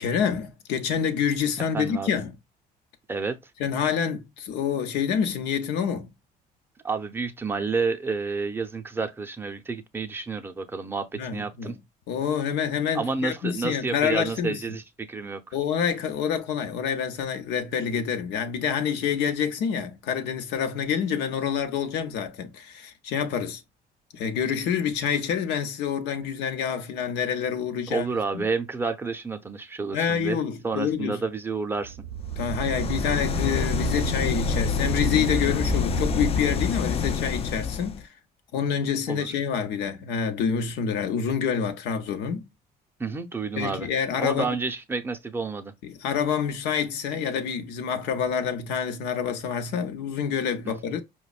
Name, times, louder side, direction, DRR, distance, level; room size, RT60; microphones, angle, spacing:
voice 1, 0.0-2.3 3.6-6.1 11.1-11.8 12.1-14.6 15.5-23.6 24.1-28.1 28.3-28.5 29.9-31.2 32.4-38.1 38.5-42.5 43.6-44.6 45.8-51.0, left 7 dB, 85° left, 0.7 m, -27 dB
voice 2, 1.7-2.2 3.1-3.5 6.8-11.8 12.9-15.5 27.9-32.0 39.1-39.4 43.0-43.9 44.2-45.7 50.6-50.7, right 4 dB, 15° right, 0.5 m, -30 dB
sound 1, 31.8-36.6, right 5 dB, 85° right, 0.5 m, -32 dB
sound 2, 32.3-38.0, left 6 dB, 35° left, 0.3 m, -27 dB
5.0 x 2.2 x 2.3 m
cardioid pair, 110°, 17 cm